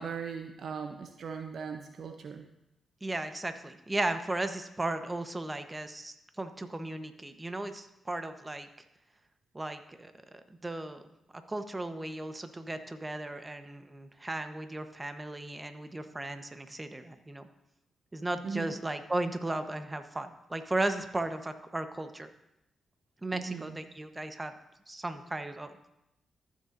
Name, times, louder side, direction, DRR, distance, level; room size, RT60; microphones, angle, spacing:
voice 1, 0.0-2.5 18.4-18.8 23.3-23.8, right 6 dB, 65° right, 7 dB, 0.6 m, -39 dB
voice 2, 3.0-8.7 9.5-11.0 11.5-17.5 18.1-22.3 23.2-24.5 24.9-25.9, right 2 dB, 25° right, 8 dB, 1.0 m, -36 dB
14.5 x 6.8 x 2.6 m, 0.85 s
hypercardioid pair, 40°, 0 cm